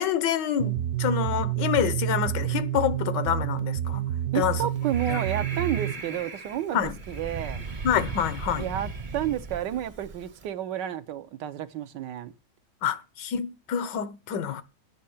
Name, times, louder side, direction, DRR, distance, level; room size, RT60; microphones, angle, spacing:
voice 1, 0.0-4.1 4.3-4.6 5.1-5.2 6.7-6.9 7.8-8.7 12.8-14.6, left 9 dB, 80° left, 1.5 m, -27 dB
sound 1, 0.6-5.9, right 12 dB, 60° right, 1.0 m, -29 dB
voice 2, 4.3-7.6 8.6-12.3, right 11 dB, 85° right, 1.4 m, -31 dB
Breathing, 4.5-10.5, right 4 dB, 40° right, 0.7 m, -37 dB
9.0 x 6.3 x 7.1 m
omnidirectional pair, 1.9 m